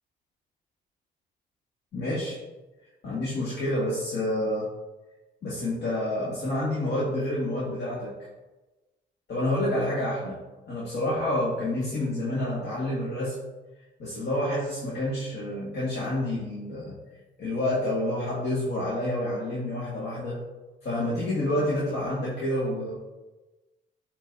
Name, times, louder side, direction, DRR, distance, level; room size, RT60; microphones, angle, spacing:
voice 1, 1.9-2.4 3.0-4.7 5.4-8.1 9.3-13.3 14.0-17.0 17.4-20.4 20.8-23.0, left 1 dB, 65° left, -7 dB, 1.9 m, -28 dB
10.0 x 4.4 x 2.7 m, 1.1 s
cardioid pair, 90°, 20 cm